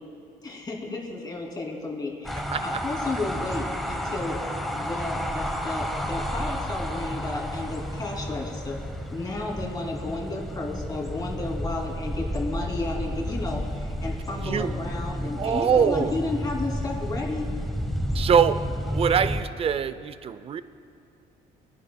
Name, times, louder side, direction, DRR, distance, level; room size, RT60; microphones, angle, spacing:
voice 1, 0.4-4.4 4.7-8.8 9.1-17.5, left 2 dB, 25° left, -2 dB, 2.7 m, -32 dB
sound 1, 2.2-19.4, equal, ahead, 1.0 m, -31 dB
voice 2, 15.4-16.1 18.1-20.6, right 7 dB, 35° right, 14 dB, 0.4 m, -23 dB
24.5 x 10.5 x 2.2 m, 2.4 s
cardioid pair, 110°, 17 cm